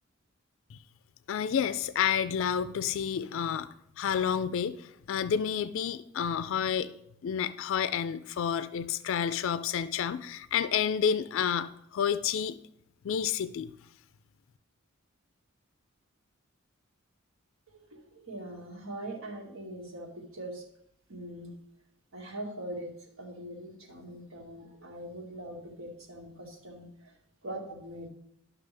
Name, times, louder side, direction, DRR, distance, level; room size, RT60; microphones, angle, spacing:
voice 1, 1.3-3.7 4.0-6.9 7.2-12.6 13.0-13.7, left 8 dB, 70° left, 13 dB, 0.4 m, -30 dB
voice 2, 17.7-20.6 21.1-21.6 22.1-22.9 23.2-27.1 27.4-28.1, right 1 dB, 85° right, -1 dB, 2.0 m, -42 dB
11.5 x 5.9 x 3.4 m, 0.76 s
head